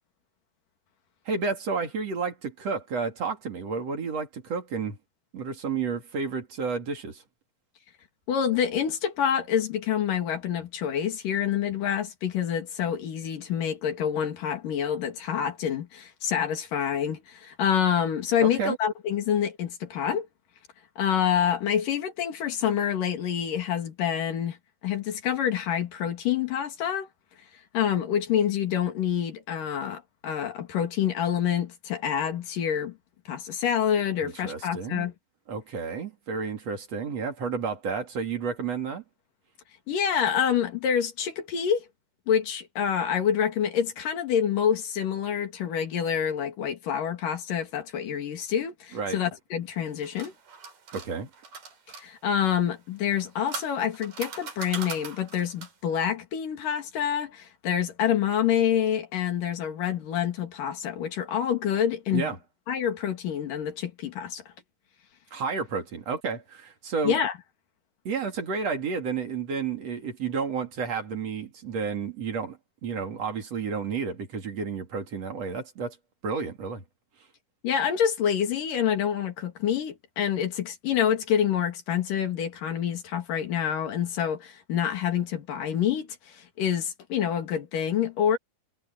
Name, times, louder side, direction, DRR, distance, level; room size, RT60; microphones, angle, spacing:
voice 1, 1.3-5.0 5.3-7.2 18.4-18.8 34.2-35.1 35.5-39.0 48.9-49.2 50.9-51.3 62.1-62.4 65.3-67.2 68.1-72.6 72.8-76.0 76.2-76.8, right 5 dB, 50° right, 3.5 m, -31 dB
voice 2, 8.3-20.3 21.0-24.6 24.8-27.1 27.7-33.0 33.3-35.1 39.9-41.9 42.3-50.3 52.0-62.4 62.7-64.4 67.0-67.3 77.6-88.4, left 9 dB, 80° left, 3.9 m, -27 dB
sound 1, 49.7-52.1 53.0-55.9, right 6 dB, 75° right, 5.1 m, -40 dB
omnidirectional pair, 3.8 m